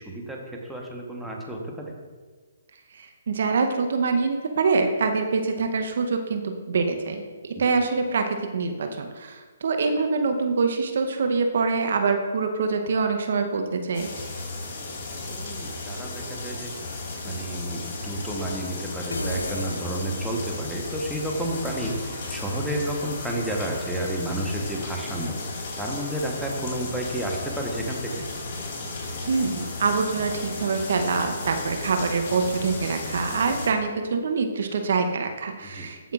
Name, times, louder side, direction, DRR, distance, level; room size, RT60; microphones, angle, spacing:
voice 1, 0.0-1.9 7.5-7.6 15.3-16.7 17.2-28.3 35.6-35.9, right 1 dB, ahead, -2 dB, 1.1 m, -31 dB
voice 2, 2.9-8.2 8.5-14.1 29.3-36.1, right 4 dB, 60° right, 5 dB, 0.8 m, -25 dB
sound 1, 13.9-33.7, left 2 dB, 45° left, 1.9 m, -34 dB
sound 2, 19.1-20.9, left 2 dB, 85° left, 0.8 m, -34 dB
14.0 x 5.5 x 2.4 m, 1.4 s
figure-of-eight pair, 135°, 0 cm